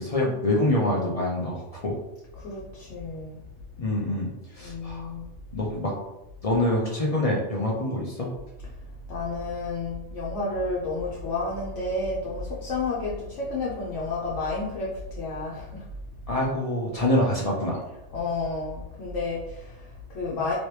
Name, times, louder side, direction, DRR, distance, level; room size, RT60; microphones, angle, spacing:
voice 1, 0.0-1.9 3.8-4.3 4.5-5.1 5.5-5.9 6.4-8.3 16.3-17.8, left 1 dB, 40° left, -3 dB, 0.5 m, -25 dB
voice 2, 2.4-3.4 4.6-5.3 9.1-15.9 18.1-20.5, left 3 dB, 75° left, -5 dB, 1.0 m, -31 dB
3.0 x 2.9 x 3.2 m, 0.94 s
omnidirectional pair, 1.3 m